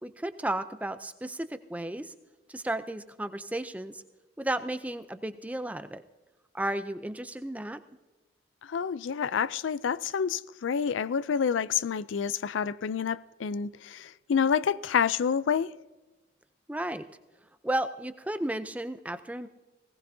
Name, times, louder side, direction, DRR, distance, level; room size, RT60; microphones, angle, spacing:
voice 1, 0.0-2.1 2.5-4.0 4.4-6.0 6.5-7.8 16.7-17.1 17.6-19.5, right 1 dB, 10° right, 0.4 m, -33 dB
voice 2, 8.6-15.7, left 7 dB, 85° left, 0.4 m, -28 dB
19.5 x 17.5 x 2.7 m
head